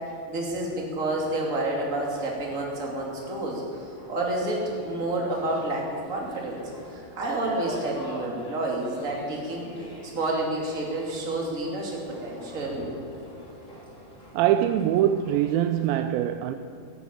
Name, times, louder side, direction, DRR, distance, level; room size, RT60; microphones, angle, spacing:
voice 1, 0.3-6.6 6.9-9.7 10.1-12.9, right 2 dB, 25° right, 2.6 m, -29 dB
sound 1, 1.0-15.9, equal, 20° left, 2.9 m, -46 dB
voice 2, 14.3-16.5, right 11 dB, 80° right, 2.3 m, -23 dB
14.5 x 11.0 x 8.9 m
omnidirectional pair, 4.4 m